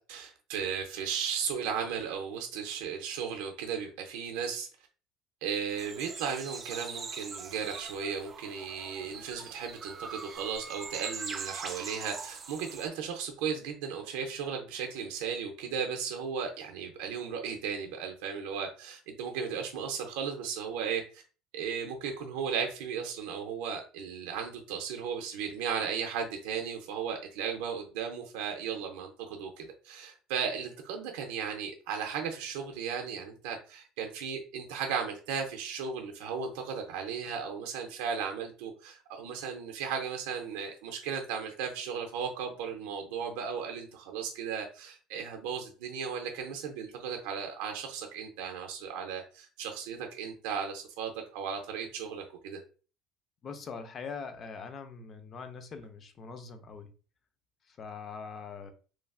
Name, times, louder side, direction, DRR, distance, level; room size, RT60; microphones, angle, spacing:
voice 1, 0.1-4.7 5.4-21.2 21.5-52.6, right 7 dB, 85° right, 0.5 m, -36 dB
sound 1, 5.7-12.9, right 5 dB, 30° right, 0.4 m, -42 dB
voice 2, 53.4-56.9 57.6-58.7, left 5 dB, 35° left, 0.4 m, -42 dB
3.1 x 2.4 x 2.3 m
cardioid pair, 125°, 0 cm